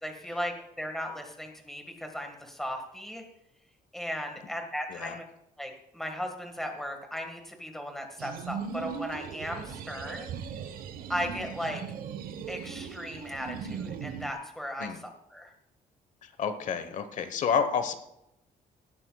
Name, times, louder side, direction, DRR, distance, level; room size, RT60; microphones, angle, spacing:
voice 1, 0.0-3.2 3.9-5.2 5.6-10.3 11.1-11.8 12.5-14.9 15.3-15.5, equal, ahead, 4 dB, 1.7 m, -36 dB
sound 1, 8.2-14.3, right 7 dB, 70° right, 1.0 m, -38 dB
voice 2, 16.2-18.0, left 6 dB, 55° left, 10 dB, 1.1 m, -30 dB
18.0 x 12.5 x 2.3 m, 0.82 s
cardioid pair, 175°, 15 cm